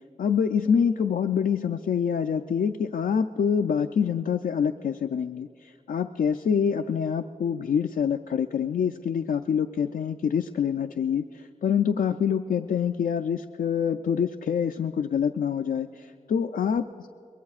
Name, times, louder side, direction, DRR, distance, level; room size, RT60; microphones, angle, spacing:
voice 1, 0.2-5.5 5.9-16.8, left 7 dB, 90° left, 6 dB, 0.4 m, -26 dB
23.5 x 21.5 x 2.4 m, 2.2 s
wide cardioid pair, 80°, 14 cm